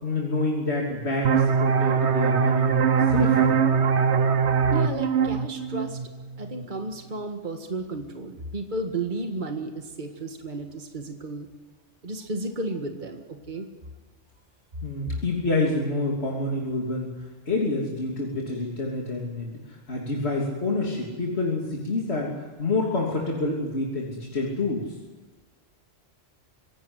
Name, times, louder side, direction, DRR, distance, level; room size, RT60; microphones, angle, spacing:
voice 1, 0.0-2.7 3.1-3.6 14.8-17.1 17.5-22.3 22.6-24.9, left 2 dB, 65° left, -2 dB, 3.5 m, -27 dB
sound 1, 1.2-6.6, right 6 dB, 70° right, 1.3 m, -22 dB
voice 2, 4.7-6.0 6.4-11.5 12.0-13.7 15.1-15.2, right 2 dB, 45° right, 4 dB, 1.9 m, -33 dB
25.5 x 17.5 x 8.1 m, 1.3 s
omnidirectional pair, 1.2 m